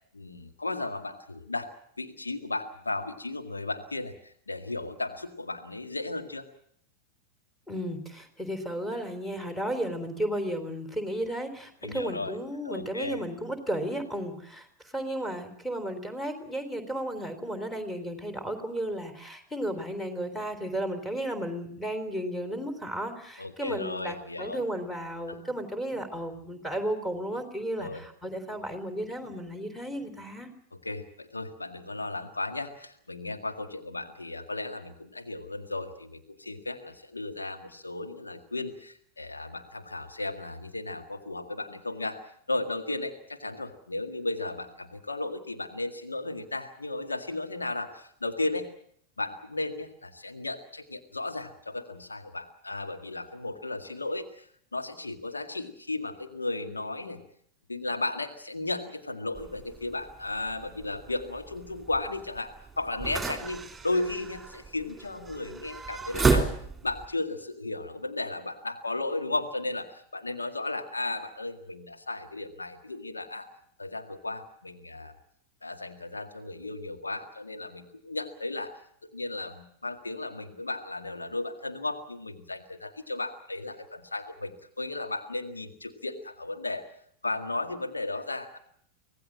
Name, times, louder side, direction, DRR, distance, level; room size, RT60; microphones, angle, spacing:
voice 1, 0.1-1.7 2.0-6.5 11.8-12.4 12.6-13.2 23.4-24.6 25.3-25.4 27.8-28.0 30.8-42.2 42.5-48.7 49.2-54.4 54.7-57.2 57.7-66.5 66.8-73.5 73.8-75.1 75.6-78.7 79.0-86.9 87.2-88.6, left 2 dB, 80° left, 5 dB, 1.9 m, -35 dB
voice 2, 7.7-30.5, right 1 dB, 10° left, 9 dB, 3.6 m, -34 dB
sound 1, 59.4-67.1, right 4 dB, 10° right, 3.2 m, -32 dB
25.0 x 18.0 x 7.5 m, 0.66 s
figure-of-eight pair, 90°, 0 cm